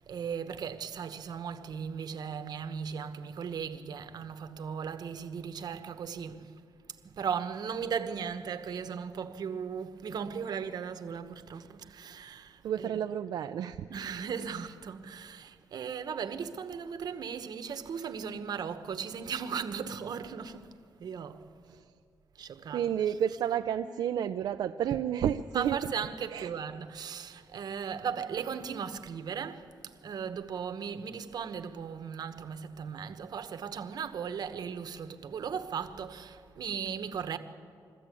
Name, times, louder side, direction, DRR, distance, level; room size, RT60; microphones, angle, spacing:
voice 1, 0.0-6.6 7.0-12.9 13.9-21.5 22.3-22.9 25.5-37.4, right 7 dB, 70° right, 1.1 m, -37 dB
voice 2, 12.6-13.9 21.7-21.9 22.7-25.8 26.3-26.5, right 9 dB, 85° right, 0.5 m, -31 dB
22.5 x 14.5 x 8.4 m
cardioid pair, 85°, 7 cm